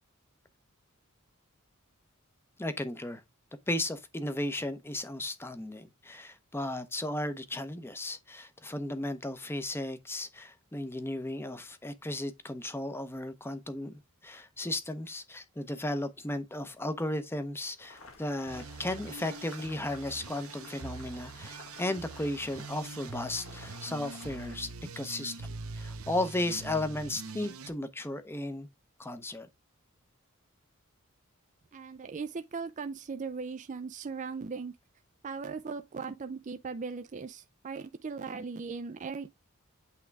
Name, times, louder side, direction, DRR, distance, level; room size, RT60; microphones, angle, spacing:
voice 1, 2.6-3.2 3.7-24.7 25.0-28.7 29.0-29.5, left 1 dB, 10° left, 0.7 m, -35 dB
Boiling, 17.8-24.6, left 3 dB, 65° left, 1.8 m, -52 dB
sound 1, 18.5-27.7, right 4 dB, 75° right, 0.8 m, -44 dB
voice 2, 31.7-34.7 35.2-39.3, right 5 dB, 35° right, 0.4 m, -38 dB
8.4 x 3.6 x 3.3 m
head